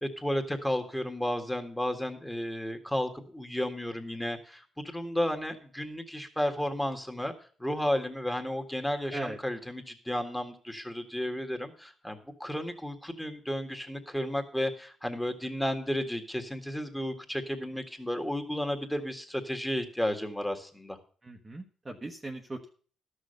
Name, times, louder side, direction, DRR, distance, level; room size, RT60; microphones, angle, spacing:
voice 1, 0.0-7.3 7.6-21.0, left 1 dB, 5° left, 5 dB, 1.8 m, -33 dB
voice 2, 21.2-22.7, right 2 dB, 20° right, 2 dB, 1.2 m, -39 dB
12.5 x 6.4 x 6.6 m, 0.43 s
cardioid pair, 90°, 0 cm